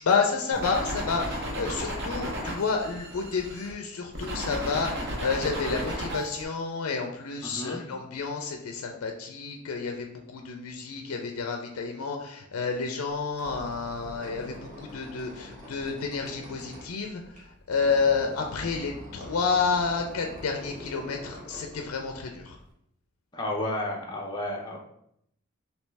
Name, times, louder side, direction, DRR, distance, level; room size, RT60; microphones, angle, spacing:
voice 1, 0.0-22.6, left 5 dB, 75° left, 3 dB, 0.4 m, -30 dB
sound 1, 0.5-3.7 4.1-6.4, equal, 50° right, 0.8 m, -34 dB
voice 2, 7.4-7.8 23.3-24.8, left 1 dB, 20° left, -1 dB, 0.5 m, -32 dB
Squeak, 13.1-22.7, equal, 35° right, 1.1 m, -45 dB
3.1 x 2.9 x 3.3 m, 0.74 s
head